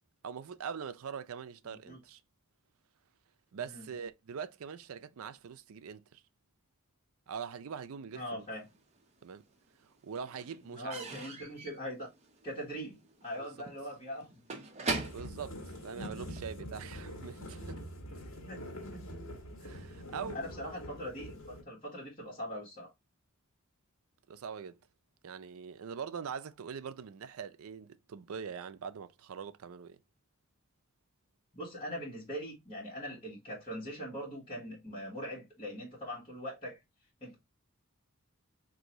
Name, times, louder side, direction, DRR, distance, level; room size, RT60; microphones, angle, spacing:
voice 1, 0.2-2.2 3.5-6.2 7.3-8.5 9.2-9.5 9.8-11.0 13.4-13.5 15.1-17.8 19.6-20.4 24.3-24.8 25.2-30.0, right 6 dB, 80° right, 0.4 m, -43 dB
voice 2, 1.6-2.0 3.6-3.9 8.1-8.7 10.7-12.1 12.4-14.3 18.5-19.2 20.3-22.9 31.5-36.8 37.2-37.3, equal, 25° left, 1.5 m, -42 dB
Slam / Squeak / Wood, 8.6-9.5 9.7-16.5, right 3 dB, 30° right, 0.7 m, -42 dB
sound 1, 14.9-21.6, equal, 70° left, 1.4 m, -44 dB
3.7 x 2.6 x 3.0 m
head